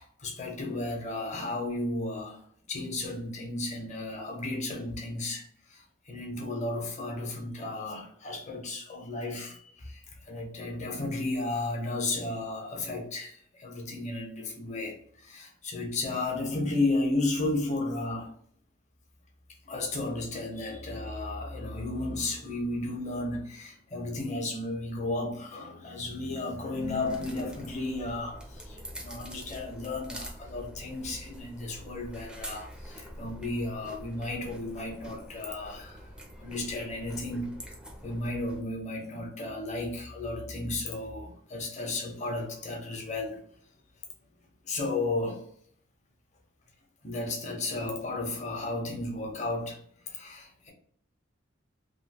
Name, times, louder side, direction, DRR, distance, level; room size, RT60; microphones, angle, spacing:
voice 1, 0.0-18.4 19.6-36.1 36.4-37.7 38.0-43.4 44.6-45.4 47.0-49.8 50.1-50.7, left 2 dB, 35° left, 0.9 m, -34 dB
sound 1, 26.8-38.6, equal, 5° right, 0.7 m, -45 dB
3.1 x 2.6 x 2.9 m
head